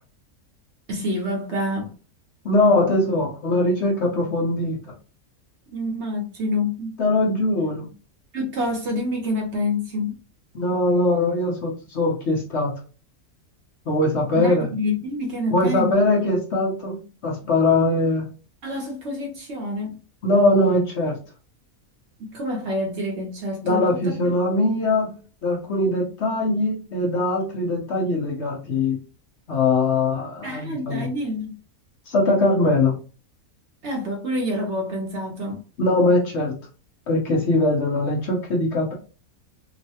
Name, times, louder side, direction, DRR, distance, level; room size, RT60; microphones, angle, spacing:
voice 1, 0.9-1.9 5.7-6.9 8.3-10.2 14.3-16.1 18.6-20.0 22.3-24.2 30.4-31.5 33.8-35.6, left 1 dB, 60° right, 1 dB, 0.9 m, -27 dB
voice 2, 2.4-4.8 7.0-7.9 10.5-12.7 13.9-14.7 15.5-18.3 20.2-21.2 23.6-25.1 25.4-29.0 29.5-31.1 32.1-32.9 35.8-36.6 37.1-38.9, left 2 dB, 55° left, -1 dB, 1.0 m, -21 dB
3.1 x 2.1 x 2.7 m, 0.35 s
omnidirectional pair, 1.5 m